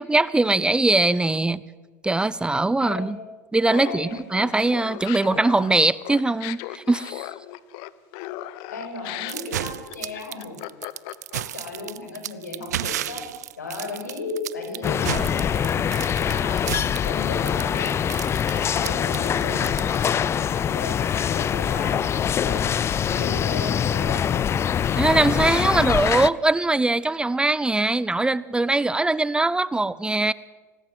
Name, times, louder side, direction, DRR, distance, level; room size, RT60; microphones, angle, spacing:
voice 1, 0.0-1.6 2.0-3.2 3.5-7.3 25.0-30.3, right 2 dB, 10° right, 20 dB, 0.6 m, -21 dB
voice 2, 2.7-3.2 3.7-4.4 8.7-10.6 11.3-13.2 13.6-18.2 18.5-24.3, left 3 dB, 90° left, 4 dB, 6.2 m, -35 dB
Laughter, 3.6-11.7, left 16 dB, 60° left, 1.0 m, -37 dB
sound 1, 9.3-20.5, right 12 dB, 75° right, 0.8 m, -33 dB
sound 2, 14.8-26.3, left 8 dB, 30° left, 0.6 m, -24 dB
24.5 x 19.0 x 7.9 m, 1.3 s
hypercardioid pair, 85°, 9 cm